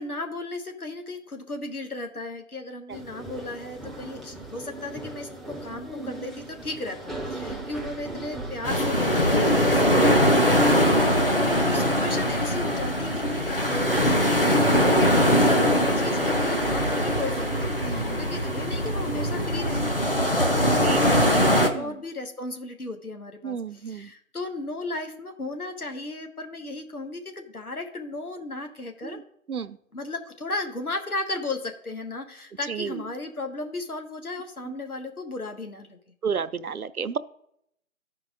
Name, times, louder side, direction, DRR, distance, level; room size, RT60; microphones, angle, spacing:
voice 1, 0.0-29.2 29.9-36.0, left 2 dB, 85° left, 5 dB, 1.6 m, -35 dB
sound 1, 2.9-21.6, right 2 dB, ahead, 0.5 m, -39 dB
voice 2, 7.3-7.6 10.8-11.0 17.5-18.3 20.8-21.0 21.7-22.0 23.4-24.1 26.6-26.8 29.0-29.2 29.5-29.8 32.7-33.0 36.2-37.2, right 6 dB, 90° right, 13 dB, 0.6 m, -33 dB
sound 2, 8.6-21.7, equal, 40° left, 0.8 m, -22 dB
13.5 x 4.7 x 3.8 m, 0.72 s
figure-of-eight pair, 170°, 43 cm